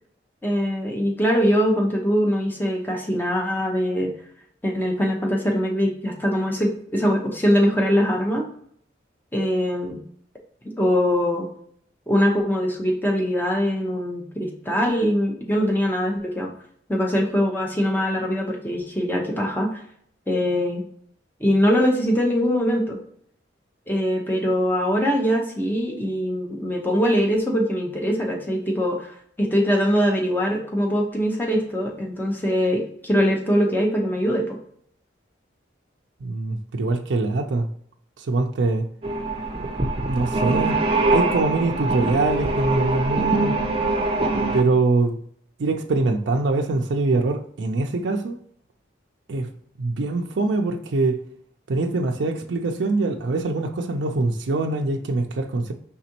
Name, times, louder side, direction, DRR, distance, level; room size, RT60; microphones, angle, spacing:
voice 1, 0.4-4.1 4.6-8.5 9.3-10.0 10.8-11.5 12.1-16.5 16.9-19.8 20.3-20.8 21.4-23.0 23.9-34.4, equal, 10° left, 0.8 m, -22 dB
voice 2, 36.2-37.7 38.2-38.9 40.1-40.8 41.1-43.5 44.5-45.2 45.6-48.4 49.3-49.5 49.8-51.2 51.7-55.7, right 3 dB, 75° right, 0.4 m, -23 dB
sound 1, 39.0-44.6, right 2 dB, 30° right, 0.6 m, -23 dB
5.0 x 3.5 x 2.8 m
head